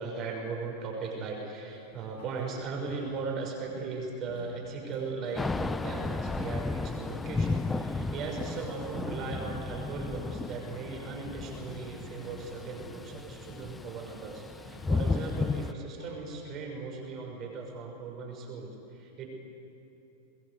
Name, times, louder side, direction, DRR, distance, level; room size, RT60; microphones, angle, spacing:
voice 1, 0.0-19.3, right 4 dB, 35° right, 1 dB, 6.2 m, -38 dB
sound 1, 1.7-16.4, left 1 dB, 55° left, 7.4 m, -53 dB
sound 2, 5.2-11.8, left 3 dB, 25° left, 4.3 m, -53 dB
Thunder / Rain, 5.4-15.7, left 3 dB, 10° left, 0.6 m, -34 dB
23.0 x 21.5 x 8.4 m, 2.8 s
figure-of-eight pair, 90°, 0 cm